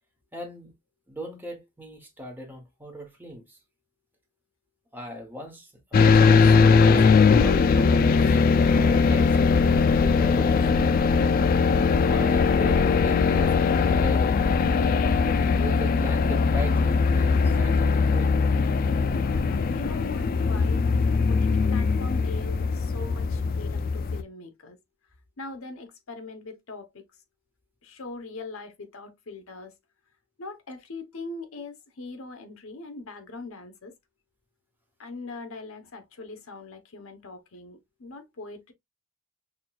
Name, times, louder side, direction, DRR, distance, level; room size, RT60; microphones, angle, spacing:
voice 1, 0.3-0.7 1.1-3.6 4.9-10.7 12.0-15.0 15.6-18.3, left 1 dB, 10° right, 1.0 m, -39 dB
sound 1, 5.9-24.2, left 5 dB, 40° left, 0.3 m, -20 dB
voice 2, 19.0-20.9 21.3-24.8 25.4-27.0 27.8-29.7 30.4-33.9 35.0-38.7, left 3 dB, 70° left, 0.8 m, -41 dB
6.0 x 2.3 x 2.4 m
head